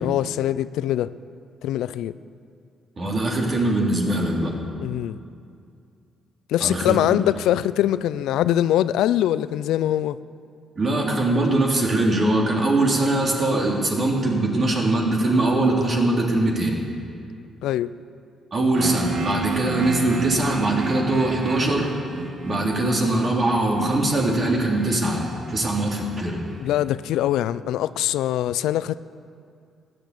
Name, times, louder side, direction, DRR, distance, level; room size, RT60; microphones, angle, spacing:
voice 1, 0.0-1.1 1.6-2.2 4.8-5.2 6.5-10.2 17.6-17.9 26.6-29.0, left 12 dB, 85° left, 16 dB, 0.4 m, -23 dB
voice 2, 3.0-4.5 6.6-7.0 10.8-16.8 18.5-21.9 22.4-26.4, right 2 dB, 40° right, -1 dB, 3.4 m, -22 dB
sound 1, 18.7-26.5, right 4 dB, 55° right, 1.8 m, -32 dB
15.5 x 10.5 x 8.4 m, 2.4 s
cardioid pair, 90°, 0 cm